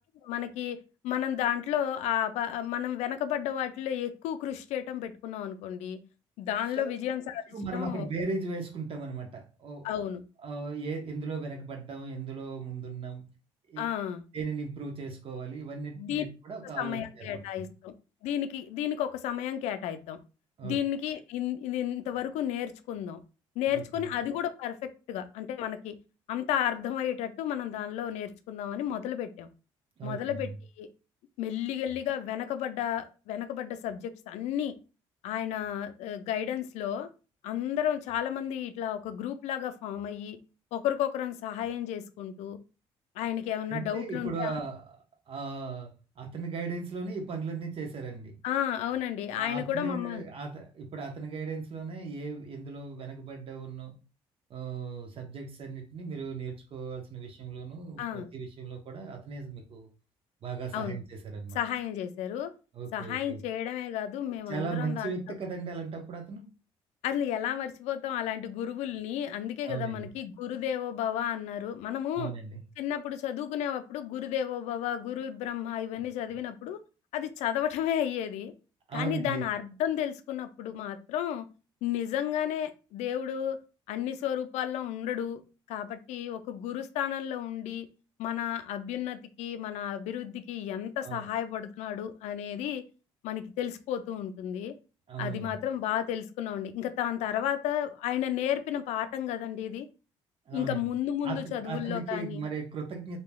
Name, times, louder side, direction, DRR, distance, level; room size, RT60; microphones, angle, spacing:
voice 1, 0.2-0.8 1.0-6.0 6.4-8.1 9.8-10.2 13.8-14.2 16.0-16.2 16.8-17.9 18.2-20.2 20.6-23.2 23.6-25.9 26.3-29.5 30.0-30.5 30.8-30.9 31.4-34.8 35.2-37.1 37.4-40.4 40.7-42.6 43.2-44.6 48.4-50.2 58.0-58.3 60.7-61.0 61.5-62.5 62.9-65.1 67.0-72.3 72.8-76.8 77.1-78.5 78.9-81.5 81.8-83.6 83.9-85.4 85.7-87.9 88.2-92.8 93.2-94.7 95.2-99.9 100.5-102.4, left 10 dB, 80° left, 10 dB, 0.4 m, -32 dB
voice 2, 7.5-9.9 10.4-13.3 13.7-13.9 14.3-17.7 20.6-20.8 23.7-24.1 30.0-30.5 43.7-44.9 45.3-48.4 49.3-53.9 54.5-59.9 60.4-61.6 62.7-63.4 64.5-66.4 69.6-70.1 72.2-72.6 78.9-79.4 91.0-91.3 95.1-95.6 100.5-100.9 101.2-103.2, right 4 dB, 55° right, 3 dB, 0.9 m, -37 dB
3.1 x 2.8 x 2.2 m, 0.33 s
supercardioid pair, 70°, 12 cm